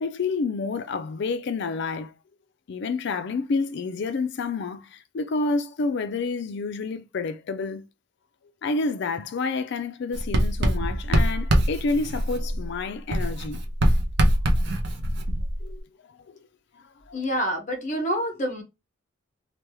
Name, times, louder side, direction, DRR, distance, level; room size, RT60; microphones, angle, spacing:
voice 1, 0.0-2.1 2.7-7.8 8.6-13.6 15.6-15.8 16.3-16.4 17.1-17.2, left 3 dB, 55° left, 0.4 m, -29 dB
Writing, 10.1-12.8 13.1-15.8, equal, 55° right, 0.6 m, -23 dB
voice 2, 17.1-18.6, equal, 40° left, 0.9 m, -27 dB
3.3 x 2.2 x 3.1 m
head